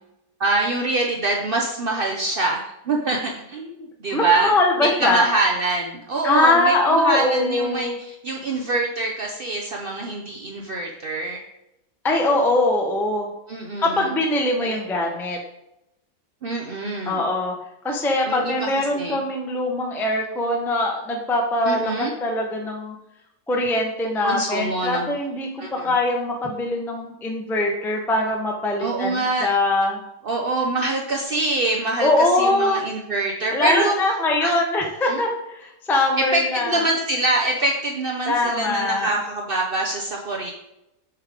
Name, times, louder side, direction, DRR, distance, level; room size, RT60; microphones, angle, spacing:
voice 1, 0.4-2.6 2.9-4.5 4.8-11.4 13.5-14.1 14.6-14.8 16.4-17.2 18.3-19.2 21.7-22.1 24.2-25.1 25.6-25.9 28.8-29.5 30.2-34.0 34.4-34.5 35.0-35.2 36.2-40.5, right 2 dB, 85° right, 0 dB, 0.5 m, -25 dB
voice 2, 4.1-5.2 6.2-8.0 12.0-13.3 13.8-15.4 17.0-17.5 17.8-23.0 23.5-30.0 32.0-32.8 33.5-36.8 38.3-39.1, left 2 dB, 5° left, 1 dB, 0.4 m, -22 dB
7.8 x 3.4 x 5.0 m, 0.87 s
omnidirectional pair, 1.9 m